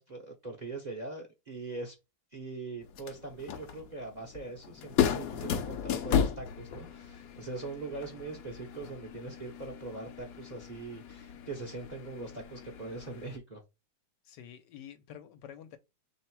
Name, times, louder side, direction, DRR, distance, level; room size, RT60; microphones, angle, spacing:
voice 1, 0.0-1.9 2.3-13.6, right 3 dB, 40° right, 0.7 m, -42 dB
sound 1, 2.8-13.4, left 8 dB, 65° left, 1.0 m, -35 dB
voice 2, 14.2-15.8, left 9 dB, 85° left, 1.4 m, -48 dB
3.4 x 3.1 x 4.5 m
omnidirectional pair, 1.8 m